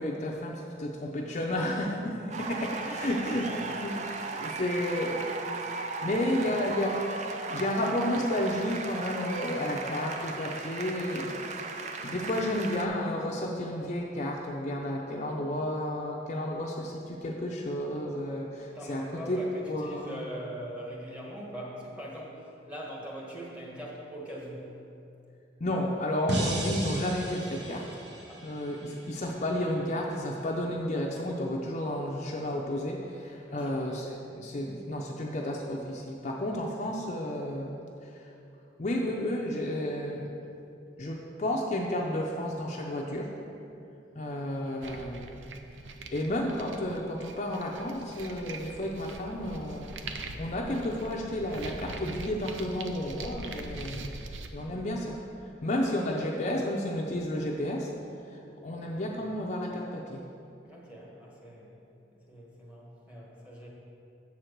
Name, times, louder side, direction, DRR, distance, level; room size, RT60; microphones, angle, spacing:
voice 1, 0.0-5.3 6.0-7.1 7.5-11.4 12.0-19.4 19.7-20.2 25.6-27.9 28.4-37.8 38.0-38.3 38.8-40.3 41.0-43.3 44.2-45.6 46.1-50.0 50.4-54.2 54.5-55.2 55.6-57.9 58.3-60.2, left 1 dB, 40° left, 0 dB, 0.5 m, -32 dB
voice 2, 1.7-2.3 2.8-2.9 3.3-3.7 18.7-24.7 28.3-28.5 33.5-33.9 60.6-61.7 62.1-63.7, equal, 5° right, -4 dB, 1.3 m, -42 dB
sound 1, 2.3-12.9, right 3 dB, 40° right, 0.4 m, -36 dB
sound 2, 26.3-29.4, right 1 dB, 60° right, 1.1 m, -35 dB
sound 3, 44.8-54.5, right 3 dB, 90° right, 0.6 m, -42 dB
7.3 x 4.5 x 6.5 m, 2.7 s
head